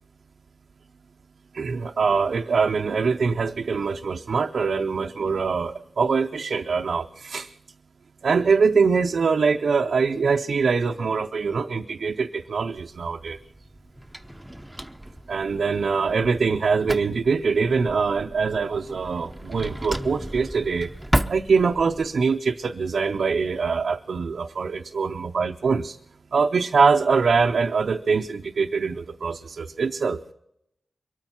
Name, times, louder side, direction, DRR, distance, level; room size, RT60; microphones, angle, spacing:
voice 1, 1.5-7.5 8.2-13.4 15.3-20.9 21.3-26.0 26.3-30.2, right 5 dB, 80° right, 4 dB, 0.5 m, -23 dB
Drawer open or close, 12.7-22.1, right 1 dB, 10° right, 0.8 m, -33 dB
23.0 x 9.0 x 5.7 m, 0.79 s
cardioid pair, 60°, 0 cm